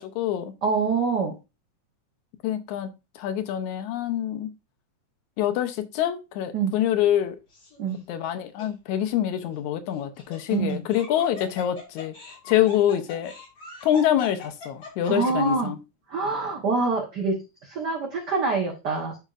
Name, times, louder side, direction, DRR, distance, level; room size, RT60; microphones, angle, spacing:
voice 1, 0.0-0.5 2.4-4.5 5.4-7.4 8.1-12.1 12.5-13.3 13.8-15.8, left 11 dB, 80° left, 2.1 m, -25 dB
voice 2, 0.6-1.3 6.5-6.7 7.8-8.0 10.5-10.8 15.1-15.7 16.1-19.2, right 4 dB, 55° right, 1.2 m, -25 dB
Laughter, 7.5-8.0 8.6-8.7 9.9-15.5, left 2 dB, 50° left, 4.2 m, -42 dB
10.5 x 4.1 x 2.4 m
omnidirectional pair, 3.3 m